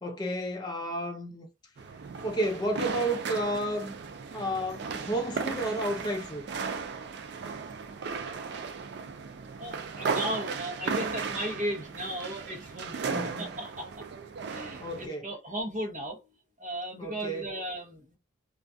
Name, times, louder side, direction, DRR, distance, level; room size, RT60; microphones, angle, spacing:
voice 1, 0.0-1.5 2.2-4.0 4.3-6.4 13.1-13.6 14.8-15.3 17.0-17.5, right 1 dB, 20° left, 0.4 m, -32 dB
sound 1, 1.8-15.1, right 5 dB, 50° right, 0.3 m, -36 dB
voice 2, 9.6-14.0 14.5-16.2 16.6-18.2, equal, 35° right, 0.8 m, -36 dB
2.3 x 2.2 x 2.5 m
head